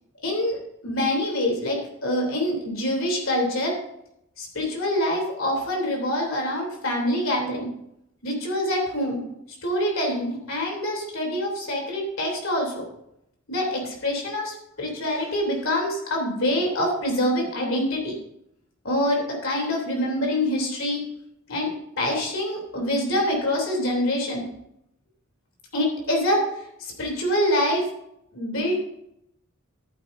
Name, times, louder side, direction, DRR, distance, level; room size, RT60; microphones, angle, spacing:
voice 1, 0.2-0.6 0.8-3.8 4.4-7.7 8.2-9.2 9.6-12.8 13.5-18.2 18.8-21.0 21.5-24.4 25.7-26.5 26.8-27.9 28.3-28.8, left 1 dB, 70° left, 0 dB, 3.3 m, -25 dB
13.5 x 9.2 x 2.7 m, 0.78 s
head